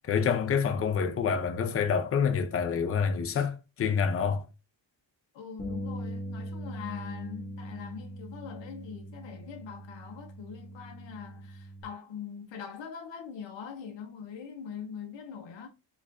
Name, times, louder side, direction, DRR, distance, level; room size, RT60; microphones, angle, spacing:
voice 1, 0.1-4.5, left 6 dB, 35° left, 0.5 m, -27 dB
voice 2, 5.3-15.7, left 7 dB, 85° left, 0.7 m, -42 dB
Bass guitar, 5.6-11.8, equal, 15° left, 1.0 m, -40 dB
4.3 x 2.4 x 2.5 m
cardioid pair, 105°, 43 cm